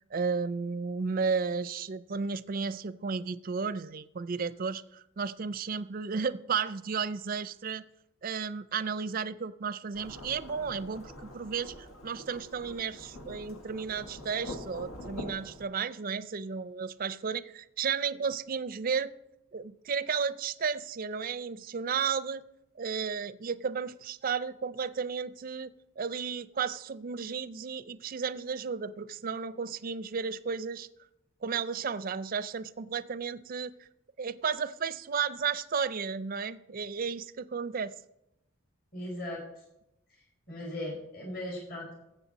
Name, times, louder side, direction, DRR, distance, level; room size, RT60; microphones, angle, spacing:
voice 1, 0.1-7.8 8.2-19.1 19.5-22.4 22.8-30.9 31.4-33.7 34.2-37.9, right 6 dB, 45° right, 15 dB, 0.4 m, -33 dB
Thunderstorm / Rain, 9.9-15.6, left 1 dB, 85° left, 1.8 m, -44 dB
voice 2, 38.9-39.4 40.5-41.9, left 1 dB, 45° left, -1 dB, 5.0 m, -38 dB
15.0 x 7.7 x 4.0 m, 0.86 s
head